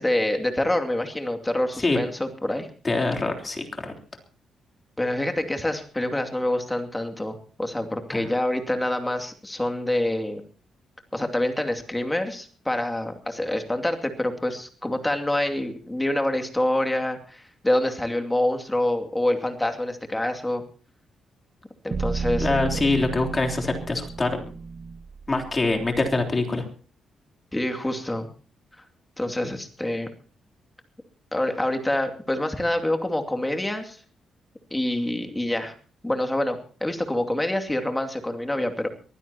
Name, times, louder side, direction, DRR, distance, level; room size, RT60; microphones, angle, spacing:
voice 1, 0.0-2.7 5.0-10.4 11.1-20.6 21.8-22.6 27.5-28.3 29.2-30.1 31.3-34.0 34.7-35.7 36.0-38.9, left 1 dB, 10° left, 5 dB, 2.5 m, -26 dB
voice 2, 2.8-3.9 8.1-8.2 22.4-24.4 25.3-26.7, left 2 dB, 25° left, 3 dB, 3.5 m, -24 dB
sound 1, 21.9-26.1, right 4 dB, 35° right, 1.1 m, -32 dB
23.0 x 16.0 x 2.9 m, 0.40 s
cardioid pair, 110°, 0 cm